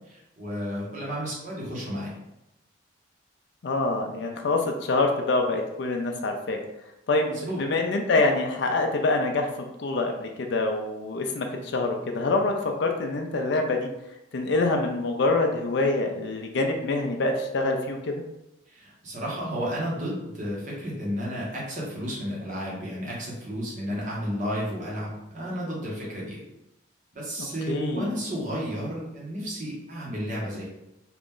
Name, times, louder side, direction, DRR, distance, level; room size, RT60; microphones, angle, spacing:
voice 1, 0.1-2.1 7.3-7.6 18.7-26.4 27.1-30.6, equal, 40° right, -5 dB, 1.1 m, -32 dB
voice 2, 3.6-6.6 7.1-9.5 9.8-12.5 12.8-13.9 14.3-18.2 27.7-28.1, left 2 dB, 60° left, 3 dB, 0.4 m, -25 dB
2.9 x 2.5 x 3.7 m, 0.88 s
head